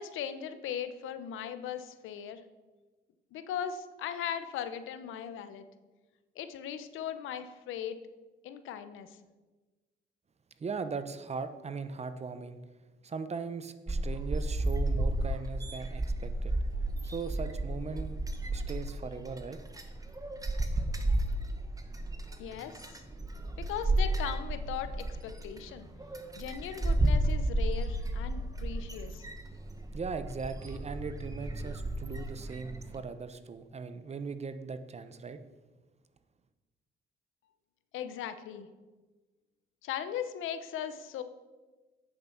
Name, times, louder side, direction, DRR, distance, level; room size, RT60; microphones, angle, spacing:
voice 1, 0.0-2.4 3.3-5.7 6.4-8.0 8.4-9.2 22.4-23.0 23.6-25.9 26.4-29.3 37.9-38.7 39.8-41.2, left 9 dB, 85° left, 11 dB, 0.8 m, -38 dB
voice 2, 10.6-12.6 13.0-16.5 17.0-18.2 18.5-19.6 29.9-35.4, right 5 dB, 35° right, 10 dB, 0.8 m, -39 dB
sound 1, 13.9-33.0, right 1 dB, 15° right, 1.2 m, -32 dB
8.6 x 7.4 x 5.7 m, 1.2 s
cardioid pair, 90°, 20 cm